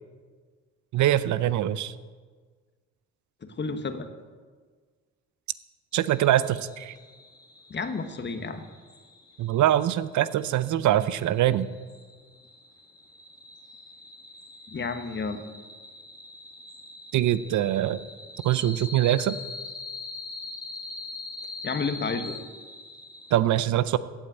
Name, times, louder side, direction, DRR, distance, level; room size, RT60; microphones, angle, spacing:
voice 1, 0.9-1.9 5.9-7.0 9.4-11.7 17.1-18.0 18.4-19.4 23.3-24.0, right 12 dB, 70° right, 15 dB, 0.6 m, -23 dB
voice 2, 3.4-4.1 7.7-8.6 14.7-15.4 21.6-22.4, left 4 dB, 35° left, 8 dB, 1.3 m, -31 dB
sound 1, 5.9-23.4, left 3 dB, 15° left, 1.4 m, -43 dB
16.0 x 5.5 x 8.7 m, 1.5 s
cardioid pair, 90°, 30 cm